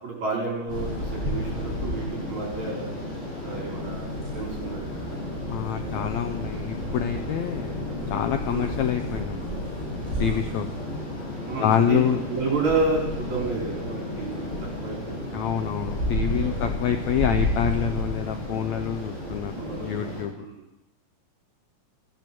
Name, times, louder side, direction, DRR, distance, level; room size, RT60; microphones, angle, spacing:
voice 1, 0.0-2.9 3.4-5.4 8.5-8.7 10.2-10.5 11.5-12.0 12.3-14.6 14.8-15.7 16.4-16.7 19.6-20.7, right 3 dB, 55° right, -2 dB, 5.7 m, -31 dB
sound 1, 0.7-20.2, left 1 dB, 20° left, 7.1 m, -31 dB
voice 2, 5.5-9.4 10.2-10.7 11.6-12.2 15.3-19.5 19.8-20.3, left 9 dB, 90° left, 7 dB, 1.6 m, -26 dB
15.5 x 9.0 x 7.7 m, 0.95 s
omnidirectional pair, 4.1 m